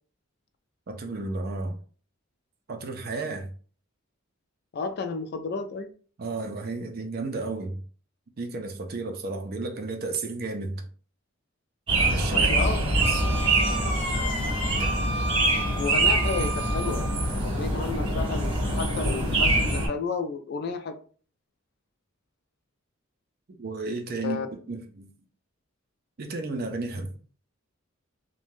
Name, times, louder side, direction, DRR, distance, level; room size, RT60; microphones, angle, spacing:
voice 1, 0.9-1.8 2.7-3.5 6.2-7.8 8.4-10.9 12.0-12.6 12.9-13.2 23.6-24.4 24.7-25.1 26.2-27.1, right 3 dB, 45° right, 0.5 m, -32 dB
voice 2, 4.7-5.9 12.3-12.8 15.7-17.1 17.3-21.0 24.2-24.5, left 4 dB, 50° left, 0.3 m, -32 dB
sound 1, 11.9-19.9, right 2 dB, 25° right, 1.0 m, -24 dB
Wind instrument woodwind instrument, 13.0-17.4, equal, 30° left, 0.7 m, -33 dB
2.6 x 2.2 x 3.1 m
head